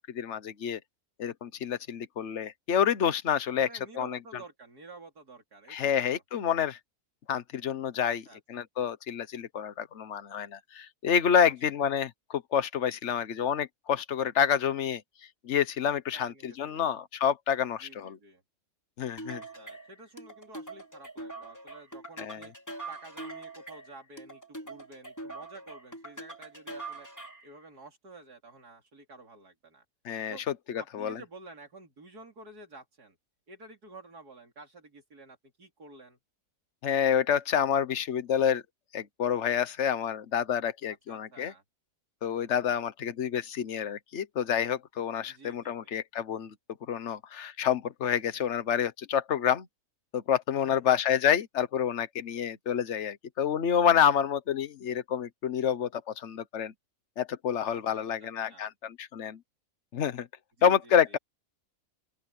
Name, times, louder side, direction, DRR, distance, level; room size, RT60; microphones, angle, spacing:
voice 1, 0.1-0.8 1.2-3.7 4.0-4.2 5.7-6.8 7.3-8.2 8.5-15.0 15.4-18.2 19.0-19.4 22.2-22.4 30.0-30.4 30.7-31.2 36.8-38.6 38.9-41.5 42.2-46.5 46.9-49.7 50.1-56.7 57.2-59.4 59.9-60.3 60.6-61.2, left 8 dB, 50° left, 1.3 m, -28 dB
voice 2, 3.6-6.2 8.0-8.4 11.4-11.5 16.1-16.9 17.8-18.4 19.3-22.5 22.9-27.1 27.4-29.8 30.3-30.4 30.7-33.2 33.5-36.2 40.9-41.6 45.3-46.0 50.6-51.0 57.7-58.7 60.6-61.2, right 3 dB, 85° right, 4.3 m, -50 dB
sound 1, 19.2-27.5, right 2 dB, 10° left, 3.5 m, -43 dB
open air
omnidirectional pair, 1.6 m